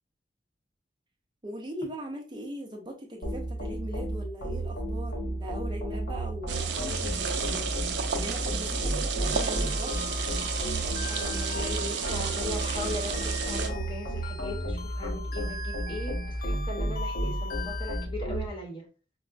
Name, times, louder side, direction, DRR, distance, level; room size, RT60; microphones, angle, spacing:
voice 1, 1.4-10.0, right 1 dB, 25° right, 0.5 m, -40 dB
sound 1, 3.2-18.5, right 1 dB, 80° left, 1.0 m, -32 dB
sound 2, 6.5-13.7, right 6 dB, 75° right, 0.5 m, -32 dB
sound 3, 9.3-18.0, left 4 dB, 55° left, 0.4 m, -42 dB
voice 2, 11.1-18.8, left 1 dB, 30° left, 0.9 m, -39 dB
4.6 x 2.1 x 2.4 m
head